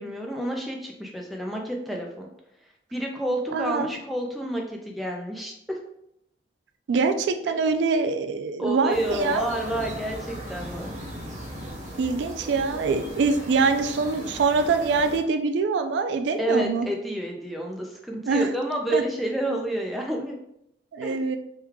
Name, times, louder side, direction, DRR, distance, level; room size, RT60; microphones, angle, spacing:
voice 1, 0.0-2.3 2.9-5.8 7.5-7.6 8.6-10.9 16.4-20.4 21.0-21.2, right 1 dB, ahead, 0 dB, 0.4 m, -29 dB
voice 2, 3.5-3.9 6.9-9.4 12.0-16.9 18.3-18.5 18.9-19.0 20.9-21.4, right 4 dB, 80° right, 7 dB, 0.3 m, -24 dB
sound 1, 8.9-15.2, equal, 45° right, 0.9 m, -38 dB
3.1 x 2.3 x 3.4 m, 0.78 s
head